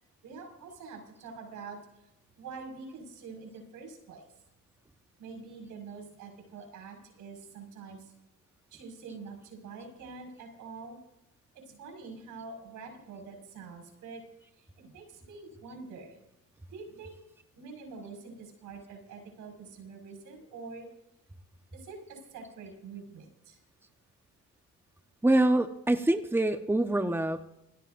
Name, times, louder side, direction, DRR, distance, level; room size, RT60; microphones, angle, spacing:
voice 1, 0.2-2.1 2.4-4.2 5.2-8.1 8.7-11.0 11.5-14.2 14.6-16.2 16.7-17.2 17.6-20.9 21.7-23.6, right 4 dB, 90° right, 2 dB, 5.7 m, -46 dB
voice 2, 25.2-27.5, right 1 dB, 5° right, 7 dB, 1.2 m, -25 dB
29.5 x 17.0 x 2.7 m, 0.88 s
cardioid pair, 70°, 30 cm